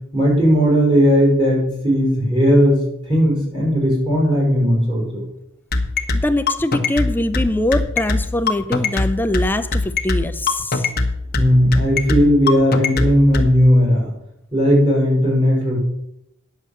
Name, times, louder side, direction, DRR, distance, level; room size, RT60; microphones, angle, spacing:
voice 1, 0.1-5.2 11.3-14.1 14.5-15.8, equal, 25° right, -4 dB, 5.0 m, -16 dB
sound 1, 5.7-13.5, left 3 dB, 45° left, 1.1 m, -20 dB
voice 2, 6.2-10.9, left 1 dB, 10° left, 9 dB, 0.4 m, -22 dB
9.6 x 7.3 x 6.6 m, 0.82 s
head